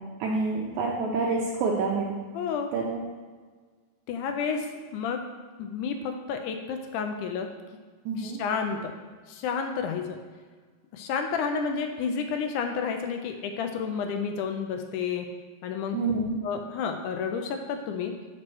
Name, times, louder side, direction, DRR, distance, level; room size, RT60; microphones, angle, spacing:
voice 1, 0.2-2.2 2.7-3.0 8.0-8.4 15.9-16.4, right 3 dB, 85° right, -1 dB, 1.7 m, -27 dB
voice 2, 2.3-2.7 4.1-4.7 4.9-5.2 5.6-7.5 8.2-8.9 9.3-10.2 10.9-15.3 15.6-16.0 16.4-18.1, left 6 dB, 85° left, 5 dB, 1.8 m, -30 dB
7.5 x 3.1 x 6.0 m, 1.5 s
omnidirectional pair, 4.1 m